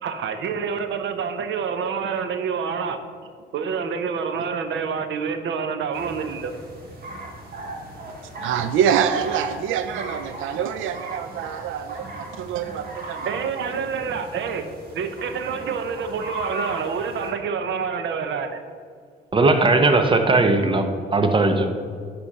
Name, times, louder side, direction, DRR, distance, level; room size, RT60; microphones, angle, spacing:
voice 1, 0.0-3.0 3.5-6.5 13.2-14.6 14.9-18.6, right 6 dB, 70° right, 8 dB, 0.8 m, -27 dB
sound 1, 5.9-17.3, right 2 dB, 50° right, 2.1 m, -37 dB
voice 2, 8.4-13.3, right 8 dB, 85° right, 10 dB, 0.4 m, -25 dB
voice 3, 19.3-20.9 21.1-21.7, right 3 dB, 25° right, 6 dB, 0.9 m, -18 dB
9.9 x 4.4 x 5.5 m, 2.1 s
cardioid pair, 90°, 20 cm